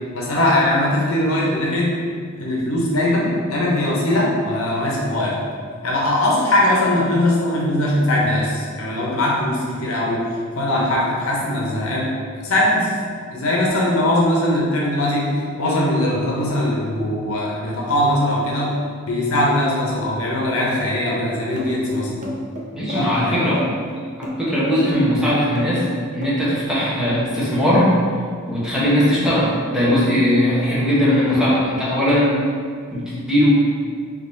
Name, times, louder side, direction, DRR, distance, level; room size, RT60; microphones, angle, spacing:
voice 1, 0.1-2.0 2.4-5.4 5.8-12.2 12.4-12.9 13.3-18.8 19.1-22.2 22.9-23.6, left 1 dB, 80° left, -4 dB, 0.9 m, -20 dB
sound 1, 21.6-26.7, left 1 dB, 35° right, 0.7 m, -30 dB
voice 2, 22.7-23.6 24.2-25.9 26.1-27.9 28.5-32.3 32.9-33.5, equal, 5° right, -10 dB, 1.1 m, -19 dB
3.9 x 3.0 x 4.0 m, 2.1 s
head